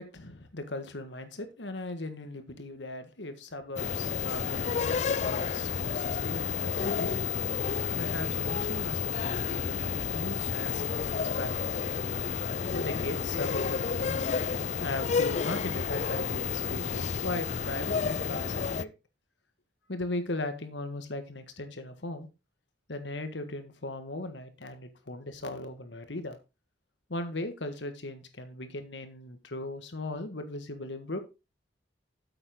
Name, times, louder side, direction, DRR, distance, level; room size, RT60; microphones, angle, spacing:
voice 1, 0.0-7.3 7.9-11.9 12.7-14.3 14.8-18.9 19.9-22.3 22.9-26.4 27.1-31.2, left 2 dB, 80° left, 9 dB, 1.6 m, -38 dB
sound 1, 3.8-18.8, left 6 dB, 40° left, 0.4 m, -31 dB
9.1 x 7.8 x 3.7 m, 0.28 s
head